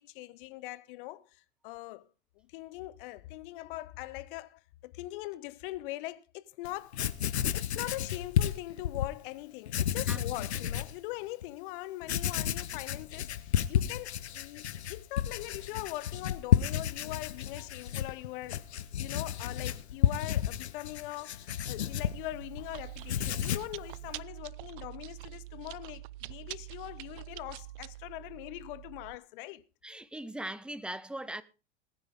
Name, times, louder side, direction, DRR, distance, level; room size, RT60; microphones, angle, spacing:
voice 1, 0.0-2.1 2.4-7.0 7.5-29.6, left 18 dB, 55° left, 1.1 m, -42 dB
Writing, 6.6-6.7 6.9-9.1 9.7-10.9 11.4-11.5 12.0-22.7 23.0-23.8, left 10 dB, 75° left, 0.9 m, -31 dB
Chewing mastication, 21.9-29.2, right 17 dB, 50° right, 0.6 m, -45 dB
voice 2, 29.8-31.4, right 1 dB, 5° right, 0.8 m, -39 dB
20.5 x 9.6 x 3.7 m
figure-of-eight pair, 90°, 33 cm